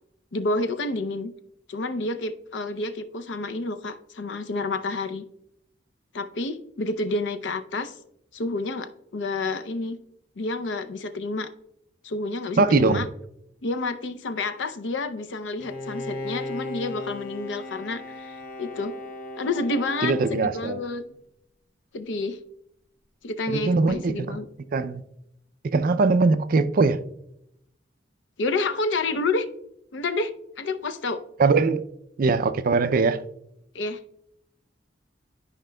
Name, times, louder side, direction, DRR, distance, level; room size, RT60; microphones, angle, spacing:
voice 1, 0.3-1.3 1.7-5.2 6.1-7.9 8.3-10.0 10.4-11.5 12.0-13.1 13.6-18.9 19.4-21.0 21.9-22.4 23.2-24.5 28.4-29.5 29.9-30.3 30.6-31.2 33.7-34.0, left 2 dB, 85° left, 0.6 m, -29 dB
voice 2, 12.6-13.0 20.0-20.8 23.5-24.4 24.7-25.0 25.6-27.0 31.4-31.8 32.2-33.2, right 4 dB, 50° right, 0.4 m, -21 dB
Bowed string instrument, 15.6-21.2, left 2 dB, 50° left, 0.8 m, -37 dB
12.5 x 5.0 x 2.2 m
head